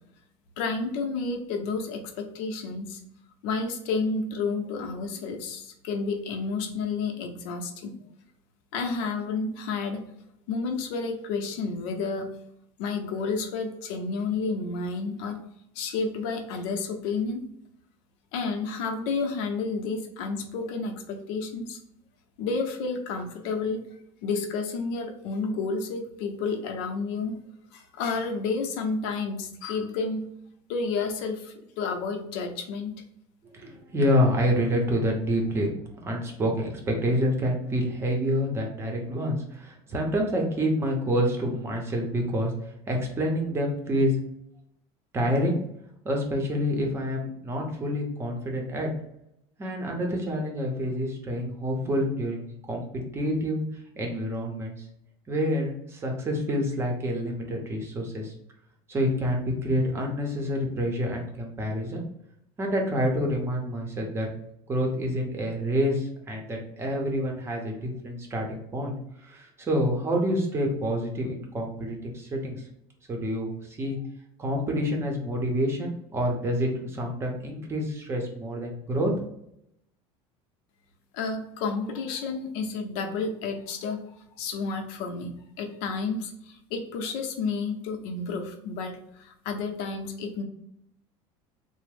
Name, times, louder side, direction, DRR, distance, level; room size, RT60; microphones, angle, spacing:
voice 1, 0.6-3.0 3.4-8.0 8.7-10.0 10.5-12.3 12.8-15.4 15.8-17.4 18.3-21.8 22.4-23.8 24.2-27.4 27.7-30.2 30.7-32.9 81.1-84.0 84.4-90.4, left 4 dB, 75° left, 4 dB, 0.7 m, -31 dB
voice 2, 33.5-35.7 36.0-42.5 42.9-44.2 45.1-45.6 46.0-48.9 49.6-53.6 54.0-54.8 55.3-58.3 58.9-62.0 62.6-64.3 64.7-68.9 69.2-72.6 73.1-74.0 74.4-79.1, equal, 20° right, 1 dB, 0.7 m, -27 dB
3.4 x 2.0 x 3.3 m, 0.76 s
cardioid pair, 160°, 13 cm